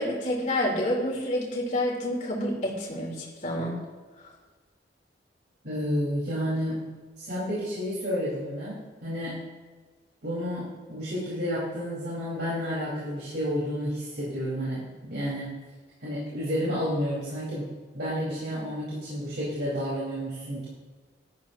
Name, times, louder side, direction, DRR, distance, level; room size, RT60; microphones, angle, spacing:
voice 1, 0.0-3.8, left 1 dB, 40° left, -3 dB, 3.8 m, -28 dB
voice 2, 5.6-6.9 7.2-9.4 10.2-15.5 16.0-20.7, equal, 65° right, -10 dB, 5.0 m, -31 dB
18.0 x 13.5 x 3.0 m, 1.4 s
head